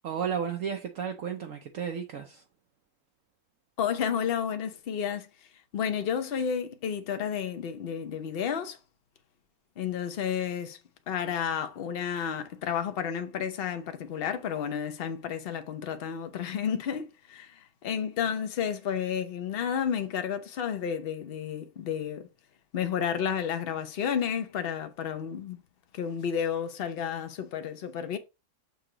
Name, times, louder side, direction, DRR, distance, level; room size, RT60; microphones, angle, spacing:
voice 1, 0.0-2.4, right 7 dB, 65° right, 1.0 m, -33 dB
voice 2, 3.8-8.8 9.8-10.8 11.1-22.3 22.7-25.6 25.9-28.2, left 8 dB, 45° left, 0.8 m, -31 dB
6.8 x 2.9 x 5.0 m
omnidirectional pair, 1.7 m